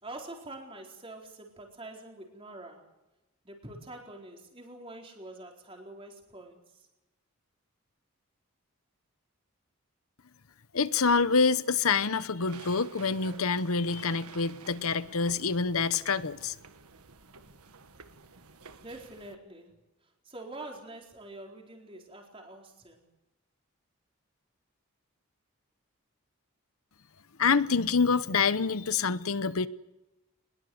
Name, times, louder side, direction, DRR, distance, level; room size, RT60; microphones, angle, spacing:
voice 1, 0.0-2.9 3.4-6.9 18.8-19.8 20.0-23.0, right 2 dB, 25° right, 4.2 m, -46 dB
voice 2, 10.7-16.5 27.4-29.7, left 5 dB, 75° left, 0.9 m, -26 dB
sound 1, 12.4-19.4, right 4 dB, 85° right, 1.5 m, -51 dB
22.5 x 21.5 x 7.9 m
head